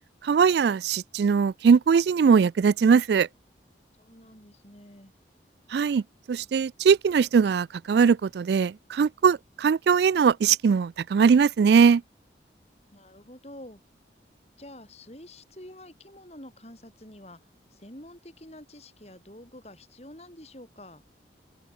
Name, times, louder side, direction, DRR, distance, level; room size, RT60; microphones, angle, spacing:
voice 1, 0.2-3.3 5.7-6.0 6.3-12.0, right 6 dB, 65° right, 0.3 m, -21 dB
voice 2, 4.0-5.1 12.9-13.8 14.6-17.4 17.7-21.0, left 1 dB, 35° left, 7.4 m, -47 dB
open air
head